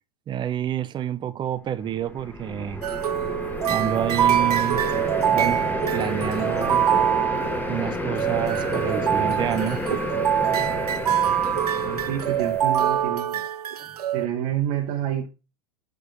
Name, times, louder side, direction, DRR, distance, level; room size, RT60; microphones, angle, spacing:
voice 1, 0.3-2.8 3.7-4.8 5.3-5.6 5.9-6.9 7.7-9.8 13.8-13.9, right 10 dB, 25° right, 0.6 m, -28 dB
sound 1, 1.8-13.2, left 1 dB, 10° left, 1.3 m, -31 dB
sound 2, 2.8-14.3, right 10 dB, 85° right, 0.4 m, -24 dB
voice 2, 11.9-13.4 14.1-15.3, right 10 dB, 50° right, 1.3 m, -28 dB
6.4 x 4.9 x 5.5 m
hypercardioid pair, 95°, 19 cm